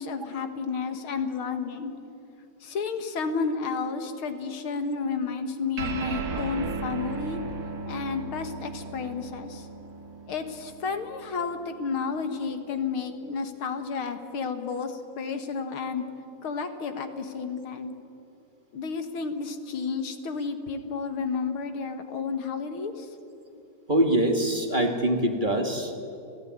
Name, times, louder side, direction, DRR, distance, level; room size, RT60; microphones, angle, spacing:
voice 1, 0.0-1.9 2.6-7.4 7.9-9.7 10.3-16.1 16.4-17.9 18.7-23.1, left 5 dB, 75° left, 7 dB, 2.5 m, -31 dB
sound 1, 5.8-12.5, right 4 dB, 65° right, 2.1 m, -36 dB
voice 2, 23.9-25.9, right 1 dB, 25° right, 4 dB, 2.0 m, -24 dB
30.0 x 16.0 x 9.6 m, 2.7 s
omnidirectional pair, 2.3 m